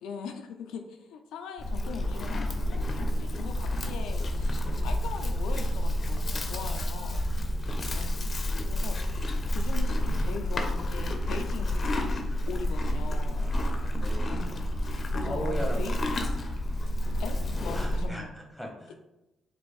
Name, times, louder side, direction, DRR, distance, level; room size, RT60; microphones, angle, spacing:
voice 1, 0.0-7.3 7.9-8.3 8.6-9.0 9.5-13.5 14.2-14.7 15.1-16.0 17.2-18.3, left 5 dB, 85° left, 5 dB, 0.3 m, -41 dB
Livestock farm animals working animals, 1.6-18.1, left 1 dB, 40° left, 0.6 m, -29 dB
voice 2, 7.3-8.0 13.3-14.4 15.2-16.0 17.7-19.0, equal, 5° right, 0 dB, 1.0 m, -39 dB
4.3 x 2.5 x 3.1 m, 0.96 s
cardioid pair, 90°, 0 cm